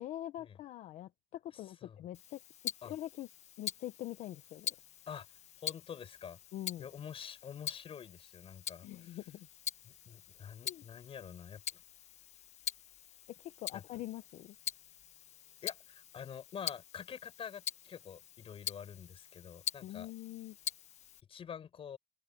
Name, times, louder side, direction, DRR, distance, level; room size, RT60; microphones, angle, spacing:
voice 1, 0.0-3.3 3.6-4.8 6.5-6.9 8.8-9.5 10.6-10.8 13.4-14.6 19.8-20.6, left 13 dB, 85° left, 0.8 m, -44 dB
Tick-tock, 2.1-21.2, left 10 dB, 65° left, 1.3 m, -45 dB
voice 2, 5.1-6.4 6.8-9.2 9.8-11.8 13.7-13.8 15.6-20.1 21.3-22.0, left 8 dB, 50° left, 5.8 m, -47 dB
open air
cardioid pair, 125°, 12 cm